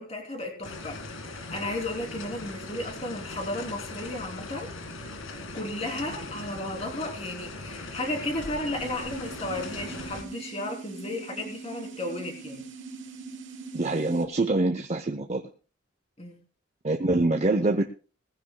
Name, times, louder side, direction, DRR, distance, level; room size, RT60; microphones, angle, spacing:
voice 1, 0.0-4.7 5.5-12.7 16.2-16.4, left 1 dB, 30° left, 1 dB, 3.2 m, -34 dB
sound 1, 0.6-10.2, left 2 dB, 90° left, 2.0 m, -39 dB
sound 2, 8.8-14.3, right 4 dB, 75° right, 3.2 m, -42 dB
voice 2, 13.7-15.4 16.8-17.8, right 2 dB, 35° right, 5 dB, 0.7 m, -25 dB
19.5 x 15.0 x 2.3 m, 0.38 s
head